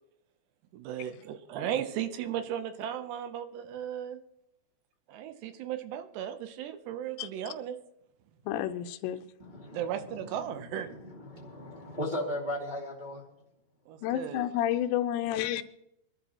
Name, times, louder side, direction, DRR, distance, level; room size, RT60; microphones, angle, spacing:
voice 1, 0.7-4.2 5.1-7.8 9.7-10.9 13.9-14.4, right 10 dB, 80° right, 9 dB, 2.9 m, -36 dB
voice 2, 8.5-9.2 14.0-15.6, left 12 dB, 85° left, 10 dB, 2.9 m, -30 dB
voice 3, 9.4-13.2, left 1 dB, 25° right, -4 dB, 1.0 m, -37 dB
24.0 x 12.0 x 3.0 m, 0.83 s
omnidirectional pair, 5.0 m